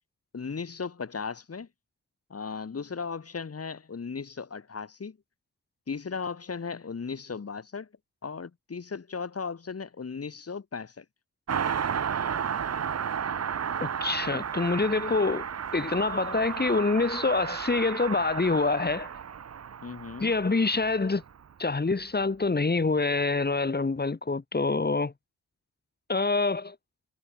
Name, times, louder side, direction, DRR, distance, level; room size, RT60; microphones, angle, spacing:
voice 1, 0.3-1.7 2.3-5.2 5.9-7.9 8.2-11.0 19.8-20.3, left 5 dB, 50° left, 2.9 m, -36 dB
Car passing by, 11.5-21.4 21.7-21.8, right 7 dB, 55° right, 1.0 m, -33 dB
voice 2, 13.8-15.5 15.7-19.1 20.2-21.2 21.6-25.1 26.1-26.8, left 3 dB, 30° left, 2.0 m, -26 dB
cardioid pair, 50°, 31 cm